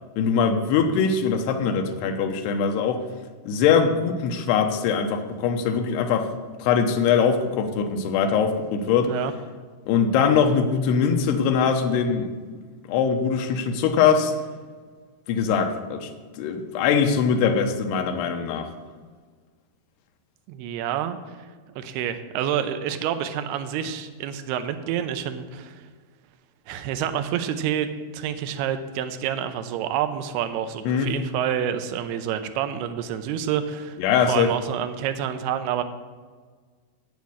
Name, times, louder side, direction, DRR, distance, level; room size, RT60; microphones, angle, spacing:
voice 1, 0.2-3.0 3.5-6.3 6.6-9.1 9.9-12.3 12.9-14.3 15.3-16.1 16.4-18.7 30.9-31.1 34.0-34.5, left 6 dB, 85° left, 5 dB, 3.0 m, -22 dB
voice 2, 20.5-21.5 21.8-25.9 26.7-34.0 34.3-35.8, right 9 dB, 85° right, 9 dB, 2.7 m, -28 dB
8.8 x 8.4 x 7.8 m, 1.5 s
omnidirectional pair, 4.8 m